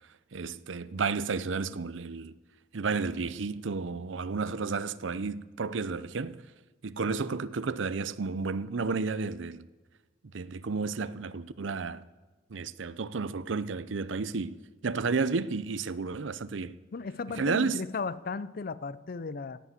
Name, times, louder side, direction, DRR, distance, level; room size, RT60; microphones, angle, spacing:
voice 1, 0.3-2.4 2.7-6.5 6.8-9.7 10.3-12.0 12.5-16.8 17.3-17.8, right 4 dB, 70° right, 0.6 m, -32 dB
voice 2, 16.9-19.6, left 4 dB, 50° left, 0.5 m, -35 dB
17.0 x 8.3 x 8.2 m
head